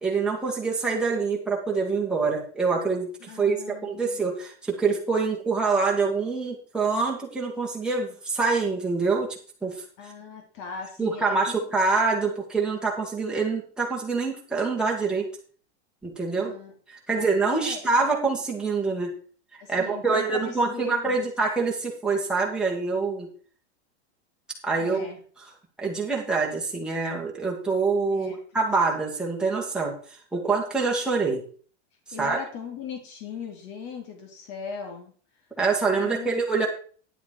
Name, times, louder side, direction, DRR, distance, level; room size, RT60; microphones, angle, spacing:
voice 1, 0.0-9.8 11.0-15.3 16.0-16.5 16.9-19.1 19.7-23.3 24.6-25.1 25.8-31.4 32.2-32.4 35.6-36.7, right 4 dB, ahead, -3 dB, 2.0 m, -25 dB
voice 2, 3.2-4.2 10.0-11.4 16.3-16.7 17.1-17.3 17.6-18.1 19.6-21.3 24.8-25.2 28.1-28.4 32.1-35.1 36.0-36.3, left 4 dB, 40° left, 3 dB, 3.0 m, -39 dB
10.5 x 7.8 x 4.6 m, 0.43 s
supercardioid pair, 165°, 34 cm